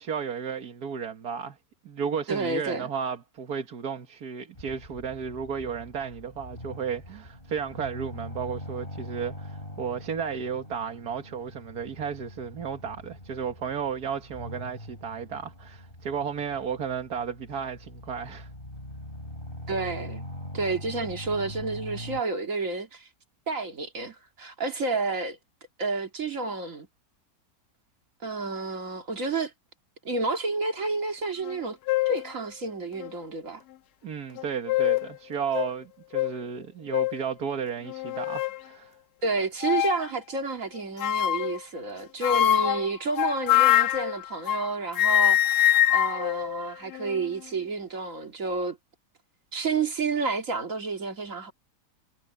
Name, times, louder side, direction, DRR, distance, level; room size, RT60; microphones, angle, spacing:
voice 1, 0.0-1.6 1.9-18.5 34.0-39.0, right 7 dB, 65° right, 2.0 m, -33 dB
voice 2, 2.3-2.9 19.7-20.2 20.5-23.1 23.5-25.4 25.8-26.9 28.2-29.5 30.0-31.8 32.1-33.6 39.2-48.8 49.5-51.5, right 3 dB, 50° right, 2.6 m, -30 dB
sound 1, 4.5-22.2, left 1 dB, 30° left, 8.1 m, -42 dB
sound 2, 31.4-31.6 31.9-32.3 33.0-33.1 34.4-35.1 35.5-35.7 36.1-36.3 36.9-37.2 37.9-38.6 39.6-40.1 41.0-41.6 42.2-44.7 44.9-47.3, left 13 dB, 75° left, 1.1 m, -24 dB
omnidirectional pair, 1.8 m